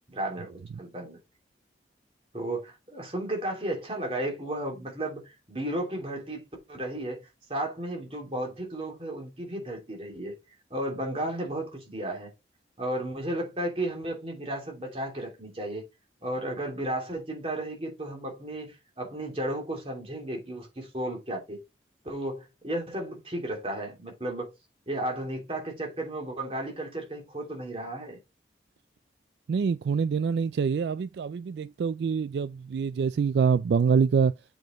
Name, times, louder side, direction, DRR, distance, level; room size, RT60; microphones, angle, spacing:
voice 1, 0.1-0.5 0.8-1.2 2.3-10.3 10.7-12.3 12.8-15.8 16.2-21.6 22.0-24.5 24.9-28.2, right 1 dB, 30° right, 2.9 m, -34 dB
voice 2, 29.5-34.3, right 6 dB, 65° right, 0.3 m, -25 dB
7.5 x 5.2 x 3.8 m
head